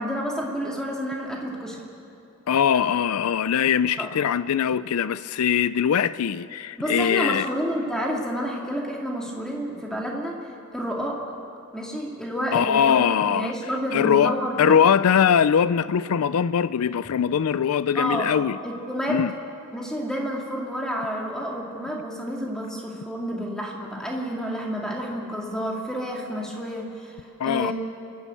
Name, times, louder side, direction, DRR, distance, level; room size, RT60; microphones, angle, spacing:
voice 1, 0.0-1.8 4.0-4.1 6.8-10.4 10.7-11.2 11.7-14.8 17.9-18.3 18.6-19.3 19.7-27.2 27.4-27.7, equal, 5° left, -2 dB, 2.4 m, -29 dB
voice 2, 2.5-7.5 12.5-13.5 13.9-18.6 19.1-19.3 27.4-27.7, left 8 dB, 90° left, 16 dB, 0.4 m, -21 dB
28.0 x 11.5 x 8.3 m, 2.6 s
head